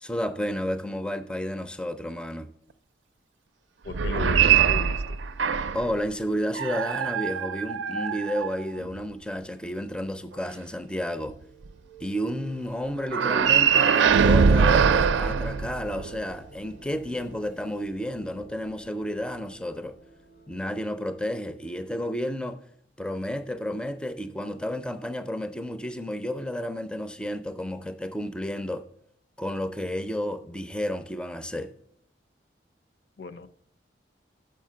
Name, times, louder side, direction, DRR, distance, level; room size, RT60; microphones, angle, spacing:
voice 1, 0.0-2.5 5.7-11.4 12.0-20.0 20.5-22.7 23.0-28.9 29.4-31.7, equal, 5° left, 0.4 m, -31 dB
voice 2, 3.8-5.2 33.2-33.5, left 5 dB, 60° left, 0.5 m, -37 dB
sound 1, 3.9-5.9 6.5-9.0 13.1-16.2, right 6 dB, 90° right, 0.4 m, -22 dB
sound 2, 11.0-21.6, right 3 dB, 80° left, 1.1 m, -50 dB
6.9 x 5.7 x 7.4 m
head